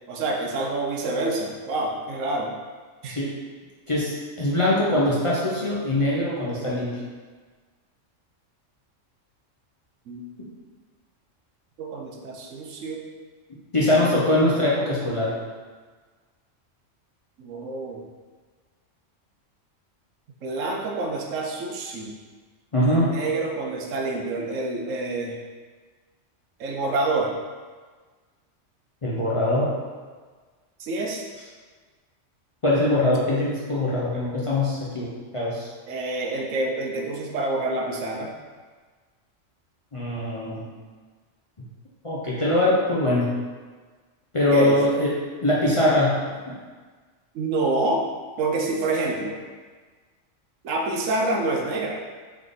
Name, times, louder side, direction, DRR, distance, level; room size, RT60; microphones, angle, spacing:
voice 1, 0.1-2.5 3.0-3.1 10.1-10.2 11.8-13.0 13.9-14.1 17.4-18.0 20.4-22.1 22.8-25.3 26.6-27.3 30.8-31.2 35.9-38.3 44.5-44.8 47.3-48.0 48.4-49.3 50.6-52.0, right 2 dB, 85° right, 1 dB, 1.0 m, -27 dB
voice 2, 3.9-6.9 13.7-15.3 22.7-23.2 29.0-29.7 32.6-35.7 39.9-40.7 42.0-43.3 44.3-45.1 45.4-46.3, left 1 dB, 35° left, -7 dB, 0.5 m, -22 dB
3.6 x 3.4 x 3.9 m, 1.4 s
omnidirectional pair, 1.3 m